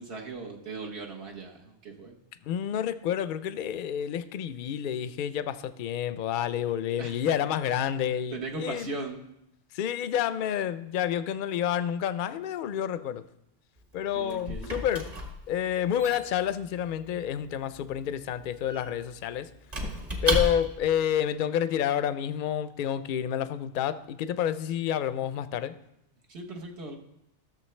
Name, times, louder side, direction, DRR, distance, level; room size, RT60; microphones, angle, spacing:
voice 1, 0.0-2.1 7.0-7.2 7.6-7.8 8.3-9.2 14.1-14.7 26.3-26.9, right 3 dB, 65° right, 1.4 m, -38 dB
voice 2, 2.4-8.9 9.7-13.2 13.9-15.1 15.5-19.5 20.2-25.8, left 9 dB, 60° left, 0.6 m, -29 dB
Squeak / Wood, 13.8-20.9, equal, 35° right, 1.4 m, -35 dB
14.0 x 6.7 x 3.2 m
omnidirectional pair, 1.2 m